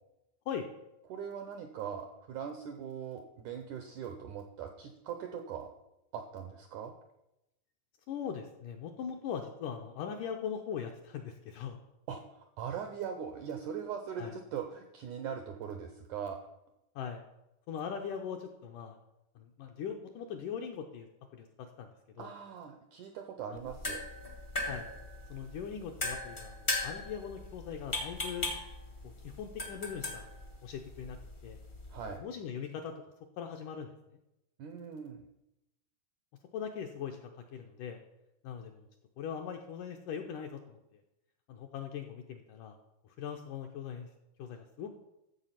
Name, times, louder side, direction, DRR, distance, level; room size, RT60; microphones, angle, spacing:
voice 1, 1.1-5.7 6.1-6.9 12.1-16.4 22.2-24.0 31.9-32.2 34.6-35.2, right 7 dB, 80° right, 6 dB, 1.8 m, -41 dB
voice 2, 8.1-11.8 14.2-14.3 17.0-17.2 17.7-19.0 19.4-21.1 21.3-21.5 21.8-21.9 22.2-22.3 23.5-23.6 24.6-24.9 25.3-28.5 29.0-30.3 30.6-31.2 31.4-31.6 32.0-32.9 33.4-33.9 36.5-38.0 38.4-38.9 39.2-41.0 41.5-42.8 43.2-44.1 44.4-45.0, left 7 dB, 75° left, 4 dB, 1.9 m, -40 dB
sound 1, 23.6-32.2, left 2 dB, 50° left, 0.5 m, -39 dB
13.0 x 7.4 x 5.8 m, 0.90 s
omnidirectional pair, 4.6 m